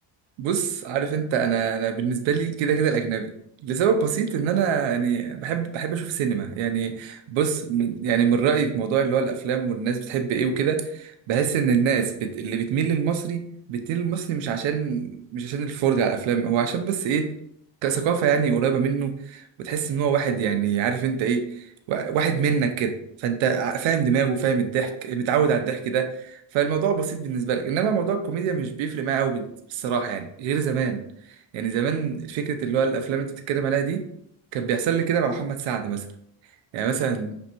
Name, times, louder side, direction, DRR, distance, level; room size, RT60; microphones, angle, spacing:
voice 1, 0.4-3.3 3.6-13.4 13.7-17.3 17.8-31.0 31.5-34.0 34.5-36.1 36.7-37.4, right 7 dB, 85° right, 6 dB, 0.7 m, -24 dB
5.2 x 3.5 x 2.9 m, 0.74 s
cardioid pair, 100°, 45 cm